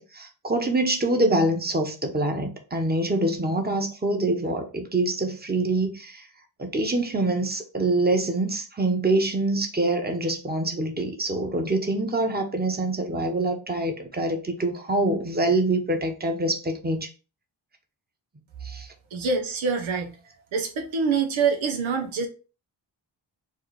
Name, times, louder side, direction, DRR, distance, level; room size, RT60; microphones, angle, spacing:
voice 1, 0.0-6.2 6.6-17.1 18.6-18.9, right 2 dB, 20° right, 1.1 m, -25 dB
voice 2, 19.1-20.2 20.5-22.3, right 5 dB, 90° right, 1.0 m, -25 dB
4.6 x 2.4 x 4.7 m
cardioid pair, 60°, 46 cm